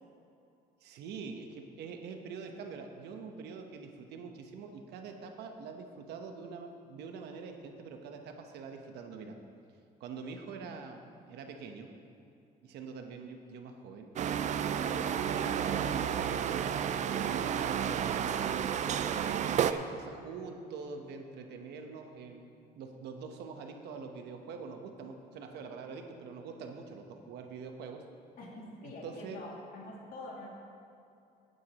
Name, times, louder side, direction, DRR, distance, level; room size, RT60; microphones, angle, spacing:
voice 1, 0.8-9.3 10.0-11.9 12.6-14.5 15.3-18.3 18.9-22.4 22.7-28.0 28.8-29.4, right 5 dB, 80° right, 4 dB, 1.1 m, -44 dB
sound 1, 14.2-19.7, right 8 dB, 45° right, 0.4 m, -31 dB
voice 2, 28.4-30.5, left 2 dB, 60° left, -3 dB, 2.5 m, -45 dB
15.5 x 9.5 x 3.0 m, 2.6 s
cardioid pair, 110°, 17 cm